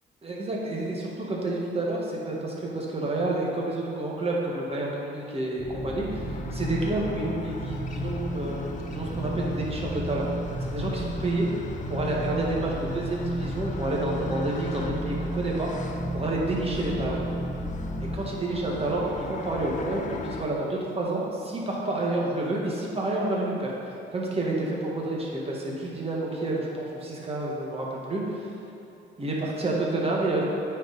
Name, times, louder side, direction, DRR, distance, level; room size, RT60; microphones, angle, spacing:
voice 1, 0.2-10.2 10.6-11.5 11.9-15.7 16.1-17.2 18.0-23.7 24.1-28.5 29.2-30.4, right 2 dB, 30° right, -3 dB, 1.5 m, -29 dB
sound 1, 5.5-20.4, left 4 dB, 40° left, 0.6 m, -40 dB
sound 2, 5.6-18.2, right 1 dB, 60° right, 1.3 m, -33 dB
8.7 x 4.6 x 4.1 m, 2.8 s
cardioid pair, 90°, 20 cm